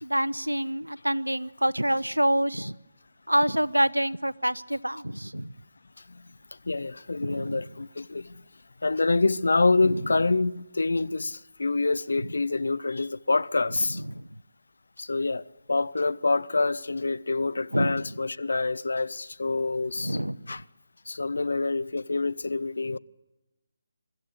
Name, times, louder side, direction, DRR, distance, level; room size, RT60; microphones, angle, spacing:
voice 1, 0.0-2.8 3.3-5.5 7.2-7.6 9.8-10.0 13.9-14.4 17.7-18.0 20.0-20.4, equal, 90° right, 0.6 m, -27 dB
voice 2, 6.6-8.4 8.8-14.0 15.0-20.2 20.5-20.6 21.1-23.0, left 3 dB, 60° left, 0.6 m, -26 dB
23.5 x 13.5 x 8.2 m
figure-of-eight pair, 150°, 0 cm